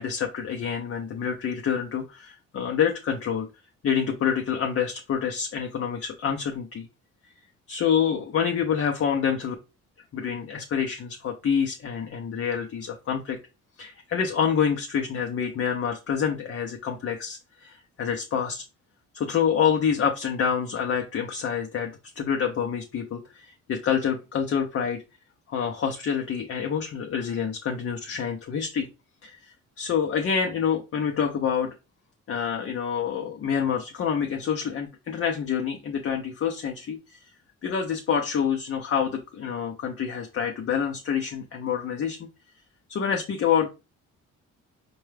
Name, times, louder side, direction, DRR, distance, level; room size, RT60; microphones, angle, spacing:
voice 1, 0.0-3.5 3.8-6.9 7.7-9.5 10.1-13.4 13.8-18.6 19.1-25.0 25.5-28.9 29.2-31.7 32.3-37.2 37.6-42.3 42.9-43.7, left 7 dB, 50° left, 2 dB, 0.6 m, -27 dB
4.5 x 2.3 x 3.2 m, 0.28 s
cardioid pair, 90°, 30 cm